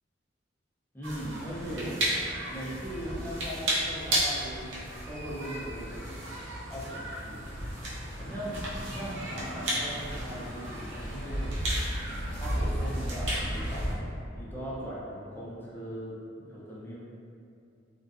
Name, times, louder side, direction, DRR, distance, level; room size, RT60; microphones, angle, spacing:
voice 1, 0.9-2.0 2.5-4.8 5.1-6.3 6.7-7.4 8.2-11.5 12.4-14.0 14.3-16.2 16.4-16.9, equal, 10° left, -8 dB, 0.5 m, -39 dB
sound 1, 1.0-13.9, right 1 dB, 80° right, 0.6 m, -33 dB
2.5 x 2.2 x 2.4 m, 2.5 s
head